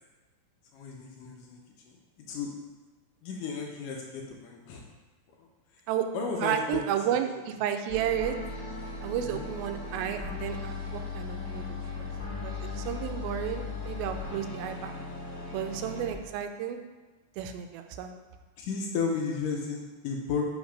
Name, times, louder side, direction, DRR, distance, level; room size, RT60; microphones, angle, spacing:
voice 1, 0.7-1.6 1.9-2.0 2.3-2.5 3.2-4.8 5.4-5.5 6.1-6.6 7.1-7.2 9.2-9.5 18.6-20.4, left 5 dB, 75° left, 0 dB, 2.0 m, -33 dB
voice 2, 6.4-8.4 9.0-12.1 12.4-15.0 15.5-16.8 17.4-18.3, right 10 dB, 85° right, 6 dB, 2.4 m, -32 dB
sound 1, 7.9-16.1, left 4 dB, 45° left, 1.2 m, -37 dB
5.6 x 5.2 x 5.0 m, 1.3 s
omnidirectional pair, 4.2 m